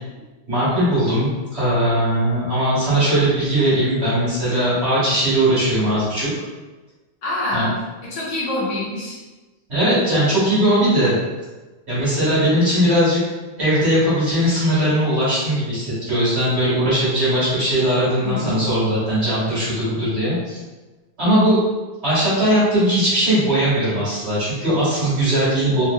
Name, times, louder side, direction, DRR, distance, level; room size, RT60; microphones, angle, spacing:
voice 1, 0.5-6.3 7.5-7.7 9.7-11.2 11.9-13.2 13.6-20.6 21.2-21.6 22.0-25.8, right 1 dB, 35° right, -10 dB, 1.3 m, -19 dB
voice 2, 7.2-7.7 8.1-9.2 18.2-18.7, left 1 dB, 60° left, -6 dB, 1.5 m, -25 dB
4.4 x 2.5 x 2.3 m, 1.2 s
omnidirectional pair, 2.4 m